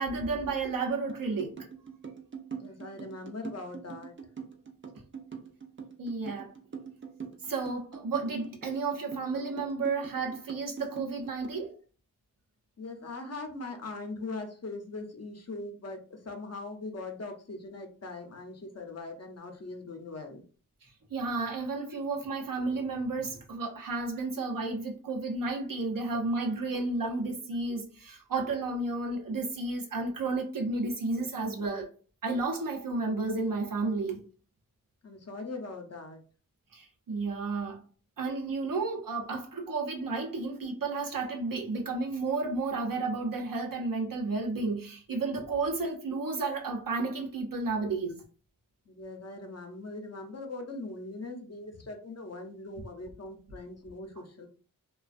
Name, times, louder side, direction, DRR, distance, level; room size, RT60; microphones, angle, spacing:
voice 1, 0.0-1.6 6.0-6.6 7.4-11.8 20.8-31.9 32.2-34.3 36.7-37.8 38.2-48.2, right 3 dB, 80° right, 0.7 m, -32 dB
sound 1, 1.1-11.6, right 6 dB, 35° right, 0.5 m, -42 dB
voice 2, 2.5-4.1 12.8-20.4 35.0-36.2 48.9-54.5, left 2 dB, 50° left, 0.6 m, -41 dB
2.4 x 2.3 x 2.4 m
wide cardioid pair, 55°, 33 cm